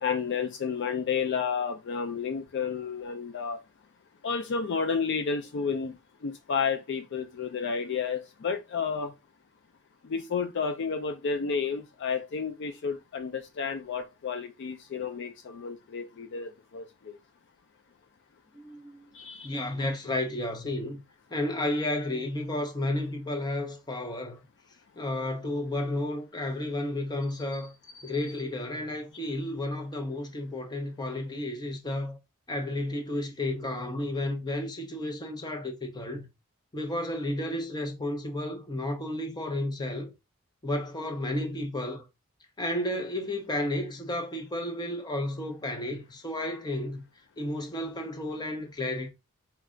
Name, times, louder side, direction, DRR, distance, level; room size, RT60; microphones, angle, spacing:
voice 1, 0.0-3.6 4.2-9.1 10.0-17.2 19.1-19.5, left 5 dB, 50° left, 0.4 m, -31 dB
voice 2, 18.5-19.0 19.4-21.0 21.3-24.4 25.0-27.7 28.0-32.2 32.5-36.3 36.7-40.1 40.6-42.0 42.6-47.0 47.4-49.1, left 1 dB, 20° left, 0.7 m, -32 dB
4.3 x 2.3 x 3.7 m
head